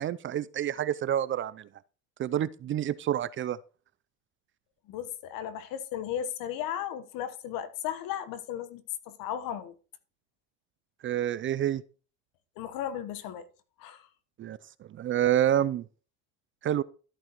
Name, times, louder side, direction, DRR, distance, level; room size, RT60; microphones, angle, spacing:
voice 1, 0.0-1.7 2.2-3.6 11.0-11.8 14.4-14.6 14.9-15.8 16.6-16.8, right 11 dB, 35° right, 0.5 m, -28 dB
voice 2, 4.9-9.7 12.6-13.4 13.8-14.1, left 10 dB, 65° left, 1.2 m, -35 dB
13.5 x 8.8 x 3.0 m
supercardioid pair, 90°, 36 cm